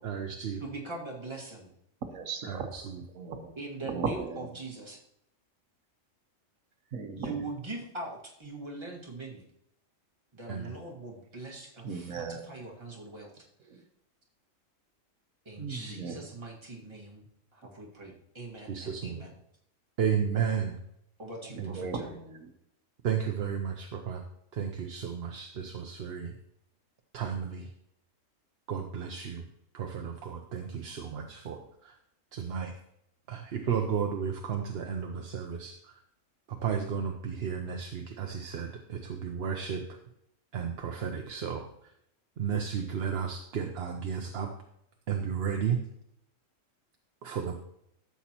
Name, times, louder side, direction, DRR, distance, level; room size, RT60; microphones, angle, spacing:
voice 1, 0.0-0.6 2.4-2.8 10.5-10.7 18.7-19.2 20.0-20.7 21.6-21.8 23.0-24.2 24.5-26.3 27.1-27.7 28.7-29.4 29.7-31.9 32.3-32.7 33.3-35.8 36.5-39.8 40.5-41.6 42.4-44.5 45.1-45.8 47.2-47.6, right 7 dB, 55° right, 3 dB, 0.9 m, -33 dB
voice 2, 0.6-1.7 3.5-5.0 7.2-9.4 10.3-13.4 13.7-13.8 15.4-17.2 17.5-19.4 21.2-22.2, right 2 dB, 20° right, -2 dB, 1.7 m, -42 dB
voice 3, 2.1-2.7 3.1-3.5 3.8-4.5 6.9-7.5 11.8-12.5 13.6-13.8 15.6-16.3 21.5-22.5, right 5 dB, 80° right, 6 dB, 1.3 m, -37 dB
12.5 x 7.2 x 2.9 m, 0.77 s
omnidirectional pair, 1.4 m